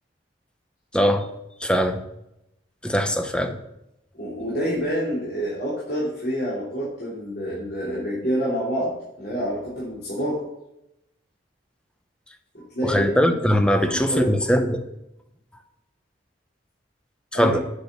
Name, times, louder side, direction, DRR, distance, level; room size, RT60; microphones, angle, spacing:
voice 1, 0.9-1.3 1.6-2.0 2.8-3.6 12.8-14.8 17.3-17.6, equal, 5° left, 7 dB, 0.8 m, -21 dB
voice 2, 4.1-10.4 12.7-13.4 13.9-14.3 17.3-17.6, equal, 60° left, -7 dB, 3.0 m, -27 dB
8.7 x 6.2 x 6.7 m, 0.85 s
head